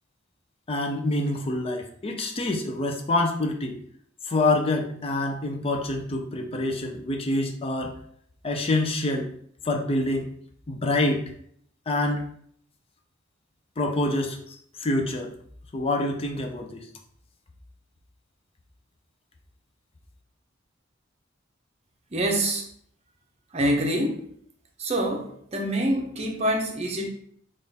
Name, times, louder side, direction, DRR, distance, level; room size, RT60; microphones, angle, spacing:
voice 1, 0.7-3.8 4.3-8.0 8.4-9.3 9.6-10.3 10.7-11.3 11.9-12.2 13.8-15.3 15.7-16.9, left 2 dB, 30° left, 3 dB, 0.5 m, -26 dB
voice 2, 22.1-22.7 23.5-24.2 24.8-27.1, right 1 dB, 35° right, 1 dB, 0.7 m, -26 dB
3.6 x 2.5 x 4.1 m, 0.64 s
head